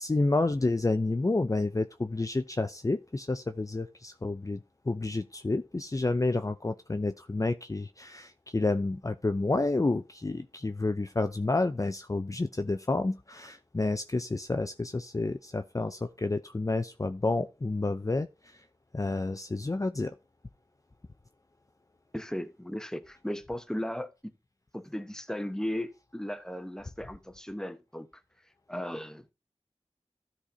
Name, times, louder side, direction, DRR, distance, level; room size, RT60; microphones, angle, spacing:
voice 1, 0.0-4.6 4.9-18.6 18.9-20.1, left 2 dB, 30° left, 0.5 m, -30 dB
voice 2, 22.1-24.3 24.7-28.1 28.7-29.3, equal, 5° left, 1.0 m, -36 dB
12.5 x 4.3 x 4.9 m
wide cardioid pair, 55°, 11 cm